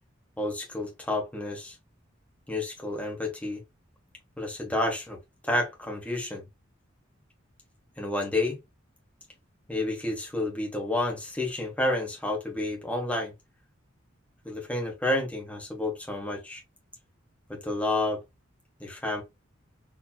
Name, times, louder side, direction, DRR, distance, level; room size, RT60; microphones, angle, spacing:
voice 1, 0.4-1.7 2.5-3.6 4.4-5.2 5.4-6.4 8.0-8.6 9.7-13.3 14.4-16.6 17.5-18.2 18.8-19.2, left 1 dB, 5° left, 1.5 m, -30 dB
4.5 x 3.2 x 2.3 m
head